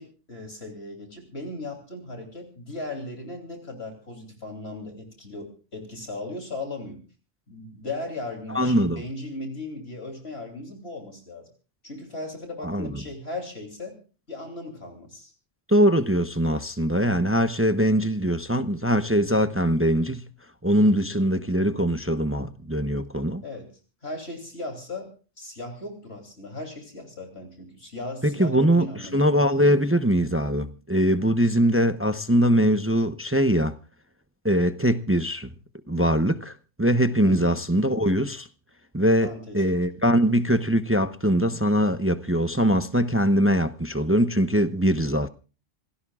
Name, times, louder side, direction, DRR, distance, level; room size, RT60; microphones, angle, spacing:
voice 1, 0.0-7.0 7.5-11.5 11.8-14.0 14.3-15.3 23.4-23.7 24.0-25.1 25.4-29.2 37.2-37.6 39.2-39.6, left 2 dB, 55° left, 3.4 m, -37 dB
voice 2, 8.5-9.0 12.6-12.9 15.7-20.2 20.6-23.4 28.2-33.7 34.4-35.5 35.9-38.5 38.9-45.3, equal, 15° right, 0.6 m, -22 dB
27.0 x 17.0 x 2.4 m
omnidirectional pair, 1.2 m